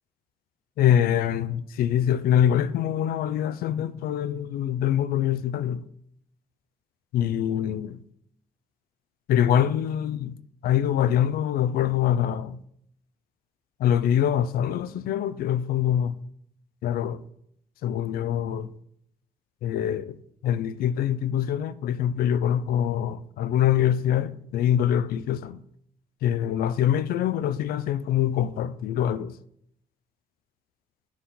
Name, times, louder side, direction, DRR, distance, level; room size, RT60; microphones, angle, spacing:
voice 1, 0.8-5.8 7.1-8.0 9.3-10.4 10.6-12.6 13.8-16.2 16.8-17.2 17.8-18.7 19.6-20.2 20.4-25.6 26.2-29.4, left 10 dB, 75° left, 0.4 m, -24 dB
9.4 x 4.2 x 3.9 m
cardioid pair, 105°, 15 cm